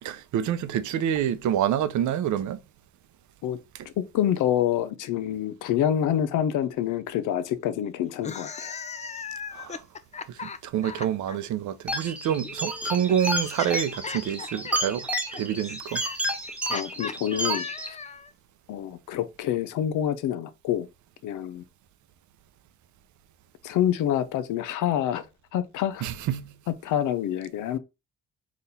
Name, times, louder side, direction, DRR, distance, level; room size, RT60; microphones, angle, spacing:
voice 1, 0.0-2.6 9.5-9.8 10.3-15.1 15.3-16.0 26.0-26.5, right 10 dB, 75° right, 0.6 m, -27 dB
voice 2, 4.0-8.7 16.7-18.0 18.7-20.9 21.2-21.6 23.6-25.2 25.5-26.1 26.7-27.8, left 10 dB, 85° left, 0.6 m, -27 dB
sound 1, 8.1-11.4 12.4-18.3, left 5 dB, 25° left, 0.4 m, -38 dB
sound 2, 11.9-17.9, right 1 dB, 5° right, 1.0 m, -31 dB
4.1 x 2.5 x 4.0 m
cardioid pair, 90°, 30 cm